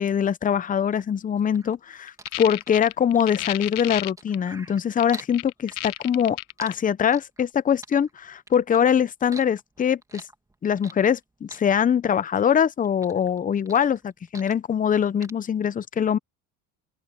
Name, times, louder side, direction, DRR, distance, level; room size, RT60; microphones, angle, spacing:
voice 1, 0.0-10.2 10.6-16.2, left 8 dB, 20° left, 0.7 m, -23 dB
sound 1, 0.9-5.4 5.7-7.5 7.8-8.9 9.2-11.2 11.5-12.6 12.8-14.9 15.2-15.3, right 2 dB, 10° right, 2.3 m, -45 dB
sound 2, 2.1-4.4 5.0-6.7, left 24 dB, 65° left, 0.7 m, -32 dB
open air
supercardioid pair, 105°, 37 cm